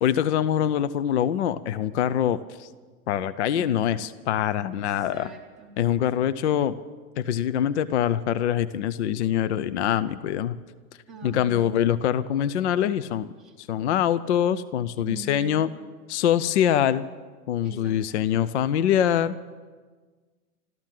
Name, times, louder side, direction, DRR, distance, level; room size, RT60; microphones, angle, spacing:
voice 1, 0.0-2.7 3.1-5.3 5.8-6.7 7.2-10.6 11.2-13.3 13.6-15.7 16.1-17.0 17.5-19.4, left 10 dB, 50° left, 14 dB, 0.5 m, -24 dB
voice 2, 3.5-4.1 4.7-5.8 6.1-6.2 11.1-11.8 13.4-13.5 15.0-15.7 17.6-18.2, right 3 dB, ahead, -5 dB, 0.6 m, -42 dB
13.5 x 13.0 x 7.5 m, 1.4 s
supercardioid pair, 175°, 45 cm